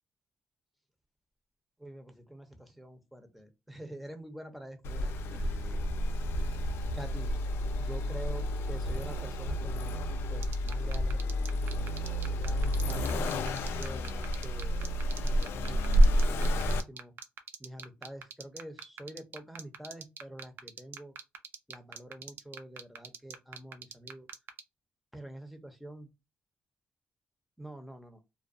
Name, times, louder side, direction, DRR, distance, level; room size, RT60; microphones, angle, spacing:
voice 1, 1.8-5.8 6.9-7.4 7.8-10.0 10.3-11.5 12.4-14.7 15.2-15.9 16.2-17.1 17.6-21.1 21.7-24.3 25.1-26.1 27.6-28.2, right 1 dB, ahead, 6 dB, 0.6 m, -46 dB
Accelerating revving vroom, 4.8-16.8, equal, 85° left, 0.3 m, -30 dB
sound 1, 10.4-24.6, right 7 dB, 65° right, 0.4 m, -42 dB
2.4 x 2.2 x 2.5 m, 0.24 s
cardioid pair, 100°, 4 cm